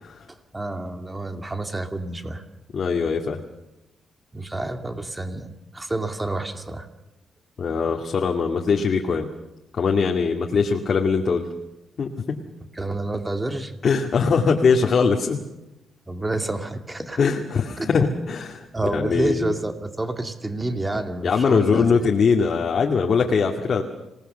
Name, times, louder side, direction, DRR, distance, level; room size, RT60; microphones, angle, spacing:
voice 1, 0.3-2.4 4.3-5.5 5.7-6.9 12.7-13.7 16.1-17.2 17.8-18.0 18.7-21.9, right 2 dB, 15° right, 6 dB, 2.4 m, -29 dB
voice 2, 2.7-3.4 7.6-9.3 9.7-11.5 12.0-12.4 13.8-15.4 17.2-18.7 18.9-19.5 21.2-23.8, left 5 dB, 50° left, 1 dB, 2.2 m, -21 dB
26.5 x 19.0 x 6.9 m, 0.97 s
cardioid pair, 105°, 0 cm